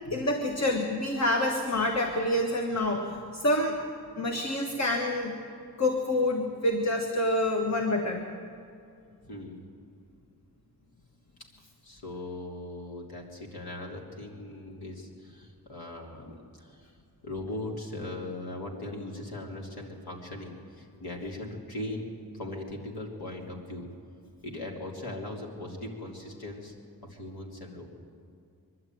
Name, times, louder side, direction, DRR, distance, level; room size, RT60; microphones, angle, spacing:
voice 1, 0.1-3.8 4.2-5.4 5.8-8.2, left 1 dB, 45° left, 2 dB, 1.6 m, -27 dB
voice 2, 9.2-9.6 11.8-16.9 17.2-22.1 22.3-23.9 24.4-26.7 27.1-27.9, left 1 dB, 80° left, -1 dB, 3.3 m, -39 dB
23.5 x 12.0 x 9.3 m, 2.4 s
wide cardioid pair, 120°, 37 cm